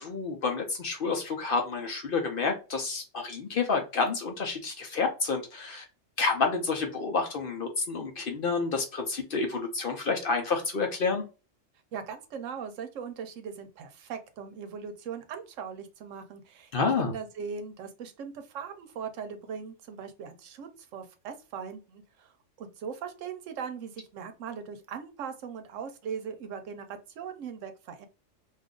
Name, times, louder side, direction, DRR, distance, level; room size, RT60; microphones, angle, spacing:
voice 1, 0.0-5.8 6.2-11.2 16.7-17.1, left 4 dB, 55° left, 4 dB, 0.7 m, -29 dB
voice 2, 11.9-16.7 17.0-22.3 22.6-28.1, right 6 dB, 80° right, 8 dB, 1.0 m, -39 dB
2.6 x 2.4 x 3.6 m, 0.32 s
omnidirectional pair, 1.3 m